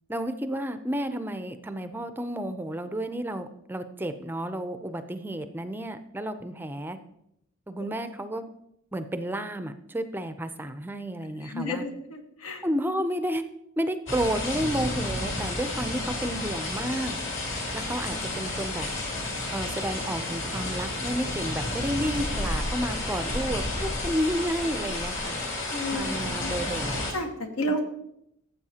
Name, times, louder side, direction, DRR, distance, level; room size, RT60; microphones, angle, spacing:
voice 1, 0.1-7.0 7.7-8.5 8.9-11.9 12.6-13.4 13.8-17.2 17.7-18.9 19.5-25.4 25.9-27.0, equal, 10° right, 9 dB, 0.4 m, -31 dB
voice 2, 11.4-12.6 25.7-26.5 27.1-27.8, equal, 90° left, 4 dB, 1.4 m, -32 dB
sound 1, 14.1-27.1, left 2 dB, 60° left, 2.4 m, -31 dB
14.5 x 7.5 x 2.8 m, 0.78 s
head